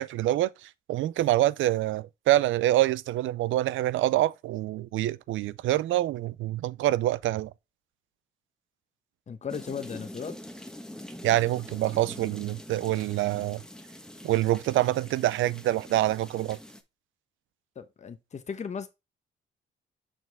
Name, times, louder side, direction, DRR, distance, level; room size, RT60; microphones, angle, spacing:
voice 1, 0.0-7.5 11.2-13.6 14.2-16.6, right 14 dB, 80° right, 0.5 m, -26 dB
voice 2, 9.3-10.4 17.8-18.9, left 6 dB, 35° left, 1.0 m, -36 dB
sound 1, 9.5-16.8, left 1 dB, 5° left, 1.1 m, -45 dB
6.5 x 4.5 x 3.5 m
cardioid pair, 90°, 20 cm